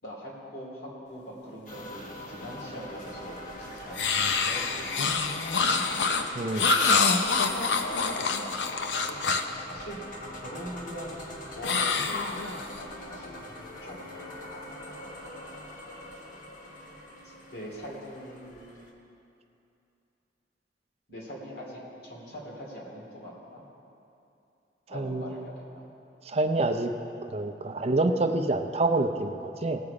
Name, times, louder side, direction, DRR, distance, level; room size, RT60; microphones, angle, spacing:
voice 1, 0.0-6.0 9.1-9.2 9.6-10.0 10.3-13.4 13.8-14.2 17.2-18.9 21.1-23.6 24.9-25.9 28.1-28.2, equal, 65° left, -4 dB, 2.8 m, -43 dB
sound 1, 1.7-18.9, left 1 dB, 50° left, 1.3 m, -43 dB
sound 2, 3.9-9.6 11.6-12.8, left 4 dB, 80° left, 0.6 m, -26 dB
voice 2, 6.3-6.7 24.9-25.2 26.3-26.9 27.3-29.8, right 2 dB, 35° right, 6 dB, 0.5 m, -27 dB
18.0 x 6.9 x 4.8 m, 2.7 s
head